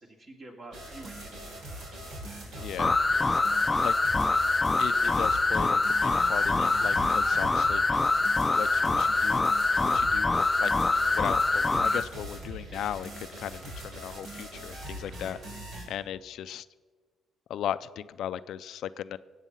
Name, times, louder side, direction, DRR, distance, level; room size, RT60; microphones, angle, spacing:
voice 1, 0.0-2.0 2.4-2.7 3.3-3.6, right 2 dB, 40° right, 2 dB, 2.6 m, -49 dB
sound 1, 0.7-15.8, right 1 dB, 75° right, 4.1 m, -41 dB
voice 2, 2.6-3.0 3.8-3.9 4.8-7.8 8.5-9.6 9.9-10.7 11.1-15.4 15.9-16.7 17.5-19.2, left 10 dB, 75° left, 15 dB, 0.4 m, -37 dB
sound 2, 2.8-12.1, left 3 dB, 20° left, 0.5 m, -24 dB
sound 3, 5.5-10.8, right 1 dB, 60° right, 5.3 m, -53 dB
19.5 x 8.1 x 5.5 m, 1.5 s
cardioid pair, 90°, 0 cm